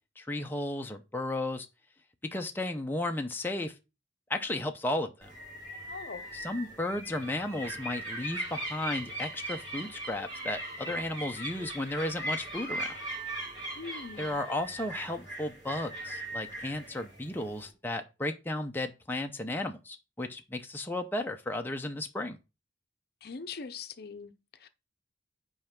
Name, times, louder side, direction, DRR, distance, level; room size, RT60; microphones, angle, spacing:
voice 1, 0.2-1.7 2.3-3.7 4.3-5.3 6.3-13.0 14.2-22.4, left 1 dB, 10° left, 0.6 m, -34 dB
sound 1, 5.2-17.7, right 1 dB, 25° right, 3.5 m, -39 dB
voice 2, 5.9-6.2 13.7-14.4 23.2-24.3 24.6-24.7, left 5 dB, 55° left, 0.7 m, -41 dB
5.6 x 4.6 x 5.8 m
head